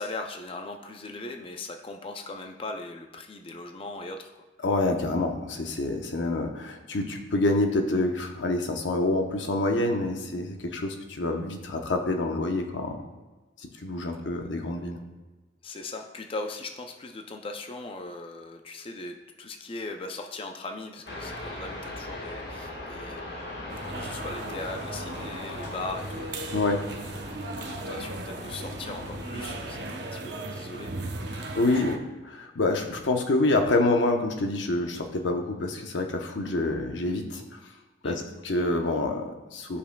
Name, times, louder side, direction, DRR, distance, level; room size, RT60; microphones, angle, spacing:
voice 1, 0.0-4.4 14.1-14.2 15.6-26.5 27.2-30.9 31.4-31.5 31.7-32.0 38.0-38.3, left 2 dB, 30° left, 4 dB, 0.4 m, -39 dB
voice 2, 4.6-13.1 13.6-15.0 26.5-26.8 31.3-37.6 38.0-39.8, left 2 dB, 90° left, 4 dB, 0.8 m, -27 dB
sound 1, 21.1-29.8, left 1 dB, 65° left, 1.4 m, -40 dB
sound 2, 23.7-32.0, right 2 dB, 65° right, 0.7 m, -37 dB
12.5 x 5.5 x 2.2 m, 1.2 s
head